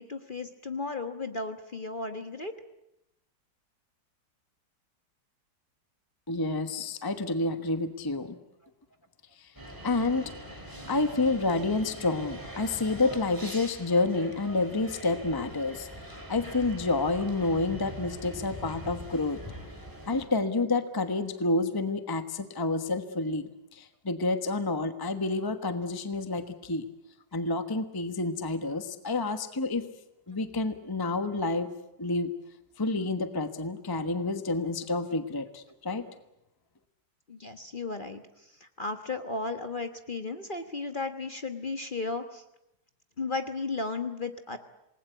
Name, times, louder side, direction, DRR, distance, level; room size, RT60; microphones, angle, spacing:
voice 1, 0.0-2.5 37.3-42.4 43.2-44.6, left 3 dB, 30° left, 7 dB, 1.2 m, -35 dB
voice 2, 6.3-8.4 9.4-9.5 9.8-10.3 10.9-15.9 16.3-19.4 20.1-26.8 27.3-29.9 30.3-31.7 32.0-32.3 32.8-36.0, left 3 dB, 15° left, 9 dB, 1.1 m, -29 dB
sound 1, 9.5-20.3, right 1 dB, 10° right, 4.0 m, -43 dB
27.5 x 20.0 x 8.2 m, 0.85 s
omnidirectional pair, 1.9 m